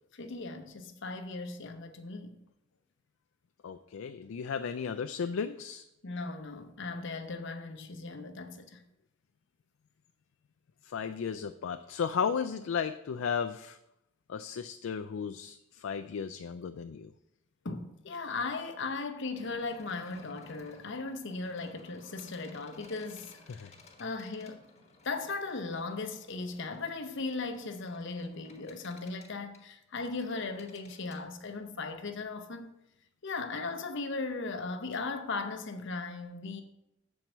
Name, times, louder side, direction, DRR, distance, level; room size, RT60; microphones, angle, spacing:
voice 1, 0.1-2.4 6.0-8.8 17.6-23.3 24.0-24.7 25.0-32.7 33.2-36.6, left 3 dB, 65° left, 0.8 m, -37 dB
voice 2, 3.6-5.9 10.8-13.8 14.3-17.1 23.5-23.7, left 6 dB, 80° left, 0.4 m, -34 dB
sound 1, 19.3-31.2, left 3 dB, 35° left, 1.2 m, -57 dB
7.1 x 4.6 x 6.6 m
head